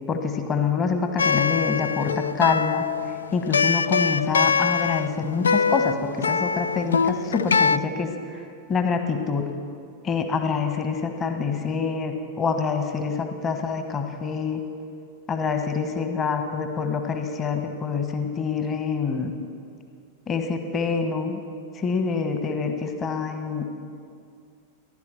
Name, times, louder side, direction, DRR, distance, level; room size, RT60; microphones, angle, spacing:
voice 1, 0.1-8.1 8.7-9.5 10.0-14.6 15.3-19.3 20.3-21.4 21.7-23.7, left 5 dB, 25° left, 6 dB, 1.3 m, -26 dB
sound 1, 1.2-7.8, left 5 dB, 70° left, 0.3 m, -23 dB
14.5 x 11.5 x 6.9 m, 2.3 s
figure-of-eight pair, 90°, 0 cm